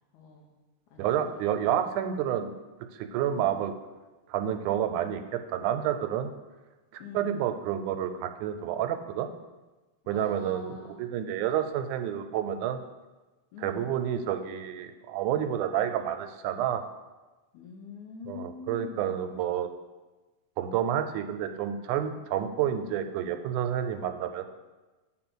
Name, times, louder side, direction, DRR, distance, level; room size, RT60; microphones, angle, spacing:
voice 1, 0.1-0.5 0.9-1.8 3.3-3.6 7.0-7.4 10.0-11.0 13.5-13.9 17.5-19.2, left 5 dB, 80° left, -2 dB, 2.3 m, -45 dB
voice 2, 1.0-2.5 2.9-3.7 4.3-6.3 6.9-9.3 10.1-12.8 13.6-16.8 18.3-19.7 20.6-24.5, right 10 dB, 85° right, 8 dB, 2.0 m, -29 dB
8.5 x 4.0 x 6.1 m, 1.2 s
omnidirectional pair, 3.4 m